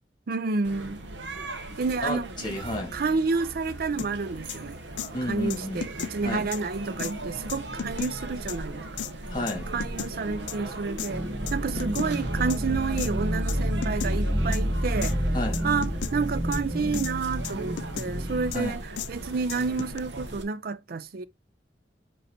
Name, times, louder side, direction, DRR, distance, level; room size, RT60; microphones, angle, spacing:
voice 1, 0.3-1.0 1.8-2.3 2.9-4.8 5.2-8.9 9.7-15.2 15.6-21.3, right 4 dB, 55° right, 0.5 m, -30 dB
sound 1, 0.6-20.4, right 1 dB, 80° right, 1.1 m, -38 dB
voice 2, 2.0-2.9 5.1-5.9 6.2-6.5 9.3-9.7 15.3-15.6 18.5-18.8, left 1 dB, 25° left, 3.1 m, -31 dB
sound 2, 4.0-4.1 4.5-4.6 5.0-5.1 5.5-6.1 6.5-6.6 7.0-7.1 7.5-8.1 8.5-8.6 9.0-9.1 9.5-10.1 10.5-10.6 11.0-11.1 11.5-12.1 12.5-12.6 13.0-13.1 13.5-13.6 13.8-14.1 14.5-14.6 15.0-15.1 15.5-16.1 16.5-16.6 16.9-17.1 17.4-18.1 18.5-18.6 19.0-19.1 19.5-20.0, left 8 dB, 80° left, 0.5 m, -34 dB
sound 3, 11.1-18.5, equal, 25° right, 1.1 m, -29 dB
7.8 x 3.0 x 4.3 m
head